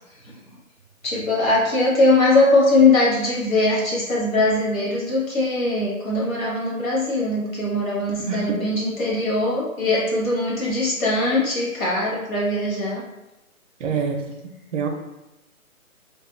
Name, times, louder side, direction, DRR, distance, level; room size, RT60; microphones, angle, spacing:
voice 1, 1.0-13.0, left 2 dB, 70° left, -5 dB, 1.3 m, -21 dB
voice 2, 8.2-8.6 13.8-14.3 14.7-14.9, right 5 dB, 60° right, 4 dB, 0.5 m, -25 dB
2.7 x 2.3 x 2.3 m, 0.96 s
figure-of-eight pair, 150°, 43 cm